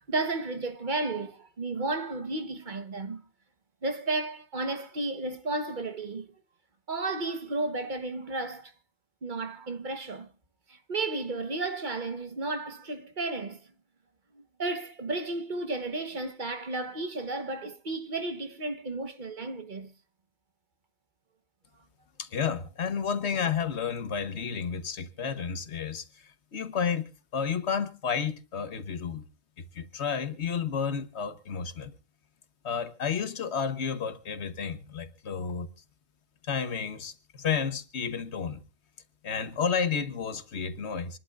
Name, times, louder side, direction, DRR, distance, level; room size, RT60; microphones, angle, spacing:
voice 1, 0.0-3.2 3.8-6.3 6.9-8.7 9.2-10.3 10.9-13.6 14.6-19.9, right 2 dB, 50° right, 1.3 m, -33 dB
voice 2, 22.2-29.2 29.6-31.9 32.6-35.7 36.4-38.6 39.2-41.2, left 6 dB, 90° left, 1.4 m, -31 dB
27.0 x 11.5 x 2.4 m
omnidirectional pair, 1.1 m